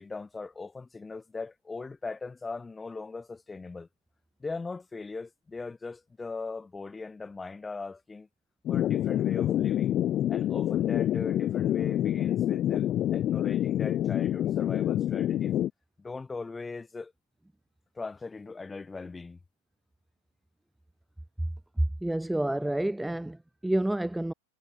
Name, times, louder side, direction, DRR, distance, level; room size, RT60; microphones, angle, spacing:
voice 1, 0.0-3.9 4.4-8.3 8.7-9.9 10.3-15.6 16.0-17.1 17.9-19.4, left 3 dB, 10° left, 5.8 m, -40 dB
sound 1, 8.7-15.7, left 12 dB, 35° left, 1.9 m, -27 dB
voice 2, 21.8-24.3, right 1 dB, 5° right, 2.1 m, -29 dB
hypercardioid pair, 105°, 0 cm